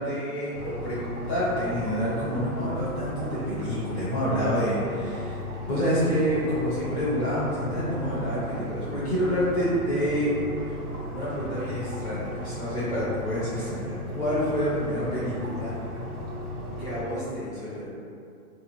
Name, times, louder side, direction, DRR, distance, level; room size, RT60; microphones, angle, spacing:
voice 1, 0.0-5.4 5.7-10.3 10.6-10.7 11.1-15.7 16.8-17.9, equal, 15° left, -11 dB, 0.7 m, -28 dB
sound 1, 0.5-17.0, left 1 dB, 55° right, 0.9 m, -36 dB
2.7 x 2.5 x 4.1 m, 2.5 s
hypercardioid pair, 165°, 45 cm